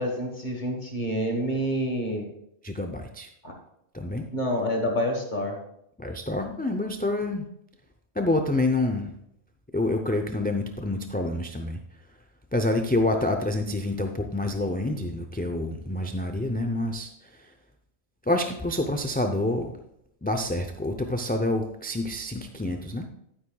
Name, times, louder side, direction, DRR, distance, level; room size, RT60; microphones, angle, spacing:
voice 1, 0.0-2.3 3.4-3.6 4.3-5.6, equal, 45° left, 2 dB, 1.5 m, -28 dB
voice 2, 2.6-3.3 3.9-4.2 6.0-7.5 8.2-9.1 9.7-11.8 12.5-17.5 18.3-19.8 20.2-23.1, left 2 dB, 15° left, 5 dB, 0.4 m, -27 dB
12.0 x 9.5 x 2.3 m, 0.79 s
omnidirectional pair, 1.1 m